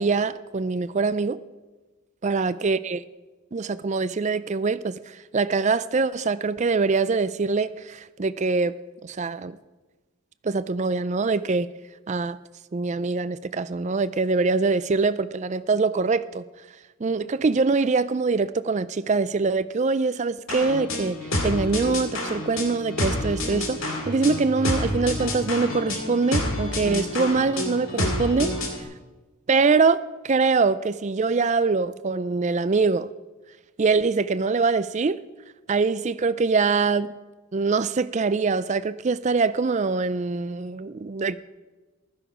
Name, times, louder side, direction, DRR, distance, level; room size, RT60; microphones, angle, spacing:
voice 1, 0.0-1.4 2.2-3.0 3.5-8.8 9.0-9.6 10.4-11.7 12.1-12.4 12.7-16.4 17.0-28.6 29.5-33.1 33.8-35.2 35.7-37.1 37.5-41.4, right 4 dB, 30° right, 0.4 m, -24 dB
sound 1, 20.5-28.8, left 1 dB, 65° left, 2.4 m, -28 dB
15.5 x 12.0 x 5.0 m
head